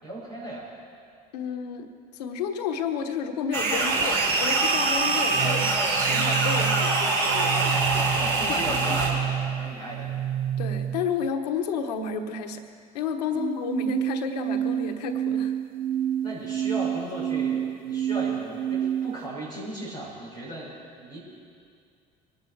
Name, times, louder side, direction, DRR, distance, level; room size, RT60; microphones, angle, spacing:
voice 1, 0.0-0.7 8.1-10.2 16.2-21.2, right 1 dB, 90° right, -7 dB, 5.3 m, -36 dB
voice 2, 1.3-7.8 8.6-9.0 10.6-12.6 12.9-15.5, left 6 dB, 75° left, 7 dB, 1.1 m, -31 dB
sound 1, 3.5-9.1, right 3 dB, 65° right, 3.1 m, -24 dB
sound 2, 5.3-11.3 13.3-19.3, right 10 dB, 45° right, 0.6 m, -29 dB
23.0 x 12.0 x 4.6 m, 2.3 s
hypercardioid pair, 55°, 20 cm